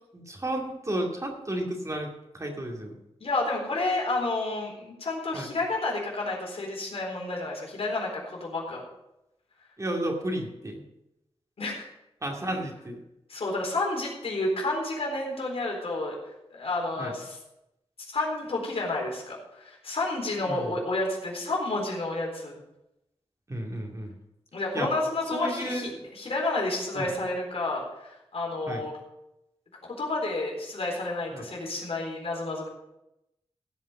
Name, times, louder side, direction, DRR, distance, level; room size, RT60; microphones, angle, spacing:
voice 1, 0.1-3.0 5.3-5.5 9.8-10.8 12.2-13.0 17.0-17.1 20.4-20.8 23.5-24.1 24.7-24.9 25.3-26.1 26.9-27.1 28.7-28.8 31.3-31.5, right 1 dB, 30° right, 1 dB, 2.3 m, -32 dB
voice 2, 3.2-8.8 11.6-11.9 13.3-16.2 16.5-17.4 18.1-22.5 24.5-28.9 29.8-32.7, left 2 dB, 70° left, -2 dB, 3.9 m, -30 dB
15.5 x 5.5 x 7.1 m, 0.89 s
wide cardioid pair, 90°, 11 cm